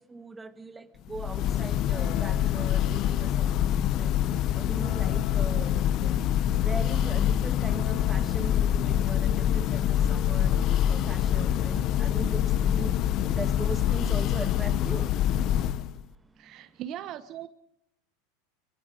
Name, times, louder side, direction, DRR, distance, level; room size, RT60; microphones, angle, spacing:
voice 1, 0.1-3.5 3.8-4.2 4.6-6.3 6.6-10.6 10.9-13.0 13.4-15.1, right 3 dB, 15° right, 9 dB, 1.4 m, -39 dB
Church bell, 1.1-16.0, left 11 dB, 45° left, 0.7 m, -25 dB
voice 2, 16.4-17.5, right 11 dB, 45° right, 11 dB, 1.0 m, -39 dB
23.5 x 23.0 x 5.1 m, 0.78 s
supercardioid pair, 110°, 0 cm